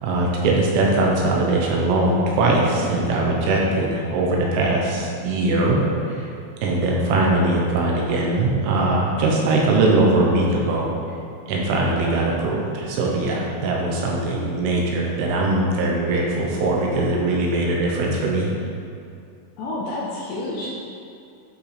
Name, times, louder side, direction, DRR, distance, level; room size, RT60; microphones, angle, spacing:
voice 1, 0.0-6.3 6.6-10.9 11.5-18.5, right 2 dB, 80° right, -2 dB, 3.2 m, -21 dB
voice 2, 19.6-20.7, left 2 dB, 75° left, -5 dB, 2.6 m, -29 dB
12.0 x 5.8 x 3.4 m, 2.4 s
omnidirectional pair, 5.9 m